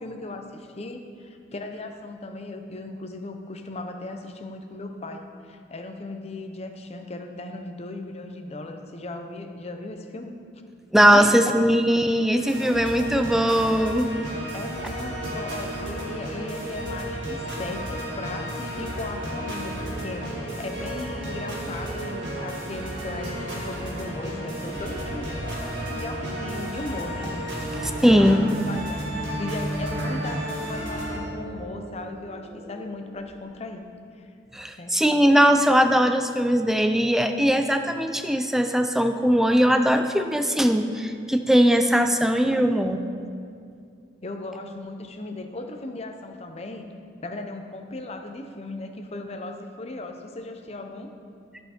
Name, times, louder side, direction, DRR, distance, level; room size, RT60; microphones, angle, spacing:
voice 1, 0.0-10.3 11.1-11.6 14.5-27.7 28.0-33.8 34.1-34.3 34.8-34.9 42.2-42.3 44.2-46.8 47.2-51.1, left 2 dB, 35° left, 5 dB, 0.7 m, -37 dB
voice 2, 10.9-14.1 27.7-28.4 34.5-43.0, equal, ahead, 7 dB, 0.4 m, -20 dB
sound 1, 12.4-31.2, equal, 90° right, 2.4 m, -33 dB
sound 2, 24.5-33.6, right 2 dB, 70° right, 1.8 m, -37 dB
13.5 x 5.6 x 4.3 m, 2.4 s
head